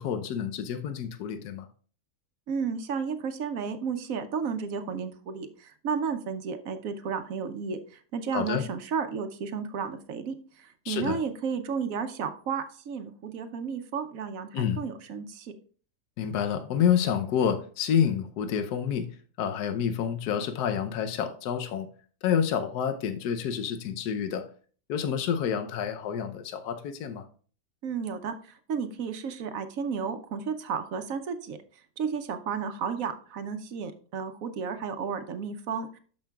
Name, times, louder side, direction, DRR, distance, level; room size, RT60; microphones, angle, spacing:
voice 1, 0.0-1.7 8.3-8.6 10.8-11.2 14.5-14.8 16.2-19.1 19.4-21.9 22.2-24.4 24.9-27.3, left 8 dB, 75° left, 1.3 m, -28 dB
voice 2, 2.5-15.5 27.8-31.6 32.0-36.0, right 6 dB, 65° right, 1.0 m, -33 dB
12.0 x 5.3 x 2.3 m
omnidirectional pair, 1.8 m